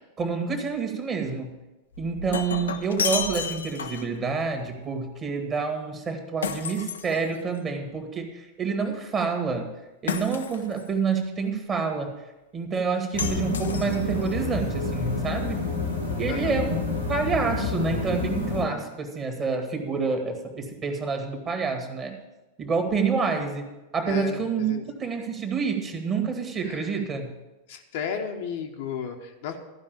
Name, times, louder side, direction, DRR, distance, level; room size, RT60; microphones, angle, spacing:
voice 1, 0.2-1.6 2.0-9.7 10.0-12.1 12.5-15.7 16.2-16.8 17.1-22.1 22.6-23.7 23.9-27.3, right 5 dB, 25° right, 5 dB, 1.8 m, -28 dB
Shatter, 1.9-4.2 6.4-7.7 10.1-10.9 13.2-14.3, left 6 dB, 70° left, 0.7 m, -32 dB
sound 1, 13.1-18.6, left 4 dB, 90° right, 2.1 m, -29 dB
voice 2, 16.3-16.6 24.0-24.4 24.7-24.8 26.6-26.9 27.7-29.6, left 7 dB, 50° left, 3 dB, 1.1 m, -33 dB
14.0 x 5.4 x 7.0 m, 1.0 s
figure-of-eight pair, 90°, 0 cm